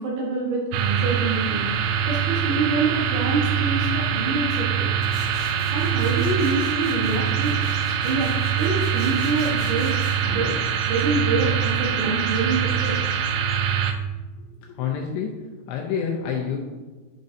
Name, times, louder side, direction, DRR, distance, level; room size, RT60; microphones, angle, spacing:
voice 1, 0.0-1.7 2.0-4.9 5.7-7.5 8.0-10.5 10.9-13.0, right 3 dB, 70° right, -3 dB, 2.7 m, -26 dB
sound 1, 0.7-13.9, right 8 dB, 85° right, 3.0 m, -24 dB
Tools, 5.0-13.9, left 2 dB, 55° left, 3.4 m, -43 dB
sound 2, 5.9-6.8 7.2-8.4 8.6-9.5 9.9-13.5 13.8-13.9, right 2 dB, 55° right, 1.7 m, -48 dB
voice 2, 14.4-15.3 15.7-16.6, left 7 dB, 80° left, -1 dB, 2.5 m, -28 dB
9.5 x 5.3 x 2.6 m, 1.3 s
omnidirectional pair, 5.4 m